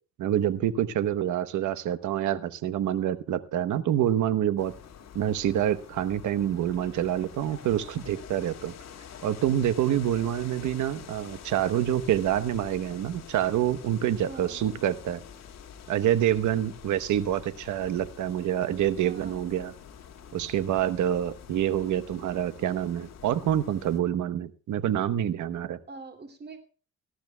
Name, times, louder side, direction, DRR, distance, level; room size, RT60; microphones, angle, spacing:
voice 1, 0.2-4.7 5.1-8.7 9.2-15.2 15.9-19.7 20.3-25.8, right 11 dB, 75° right, 12 dB, 1.0 m, -27 dB
sound 1, 4.6-24.0, left 8 dB, 60° left, 2.2 m, -47 dB
voice 2, 14.3-14.7 18.9-19.5 25.9-26.6, right 4 dB, 35° right, 8 dB, 2.6 m, -45 dB
19.0 x 13.0 x 2.2 m, 0.38 s
cardioid pair, 90°, 30 cm